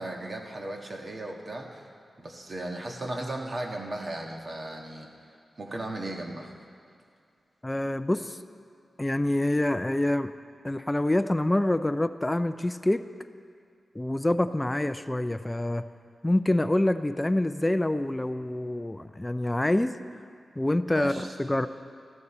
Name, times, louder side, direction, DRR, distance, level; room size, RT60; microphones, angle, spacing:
voice 1, 0.0-1.8 2.2-5.1 5.6-6.5 20.9-21.3, right 1 dB, 35° right, 1 dB, 1.5 m, -36 dB
voice 2, 7.6-8.4 9.0-10.3 10.6-13.1 13.9-15.9 16.2-19.9 20.6-21.7, left 1 dB, 10° left, 11 dB, 0.4 m, -26 dB
19.0 x 14.5 x 4.3 m, 2.3 s
wide cardioid pair, 155°, 0 cm